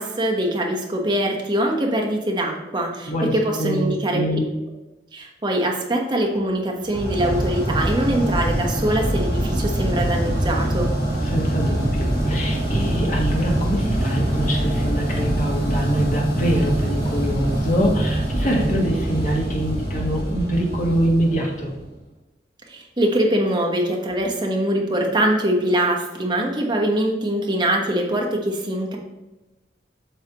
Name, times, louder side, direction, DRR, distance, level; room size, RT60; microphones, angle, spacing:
voice 1, 0.0-4.4 5.1-10.9 22.7-29.0, right 1 dB, 25° right, 0 dB, 1.2 m, -23 dB
voice 2, 3.1-4.5 11.2-21.7, equal, 45° left, -1 dB, 1.6 m, -24 dB
sound 1, 6.9-21.9, right 1 dB, 30° left, 2.5 m, -24 dB
8.0 x 6.4 x 3.0 m, 1.1 s
head